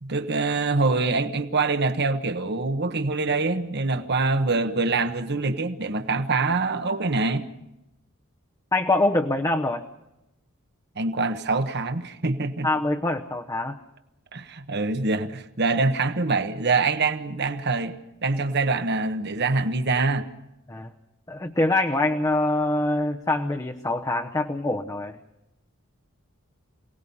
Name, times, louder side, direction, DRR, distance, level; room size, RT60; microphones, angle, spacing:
voice 1, 0.0-7.5 11.0-12.7 14.3-20.3, right 3 dB, 50° right, 1.3 m, -25 dB
voice 2, 8.7-9.8 12.6-13.8 20.7-20.9 21.3-25.2, left 2 dB, 15° left, 0.9 m, -24 dB
28.0 x 18.5 x 5.5 m
head